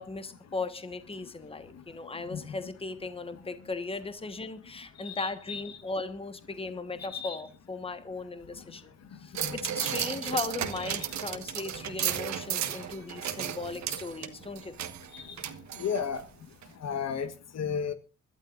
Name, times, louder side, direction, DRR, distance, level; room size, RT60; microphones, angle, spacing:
voice 1, 0.0-14.9, left 3 dB, 20° left, 10 dB, 1.4 m, -37 dB
voice 2, 5.0-5.6 7.1-7.4 9.4-9.6 15.1-15.3 15.8-16.2 16.8-17.9, left 7 dB, 60° left, 10 dB, 1.4 m, -33 dB
sound 1, 9.3-16.2 16.6-16.7, right 10 dB, 65° right, 1.4 m, -34 dB
25.5 x 12.0 x 2.6 m, 0.31 s
cardioid pair, 90°, 30 cm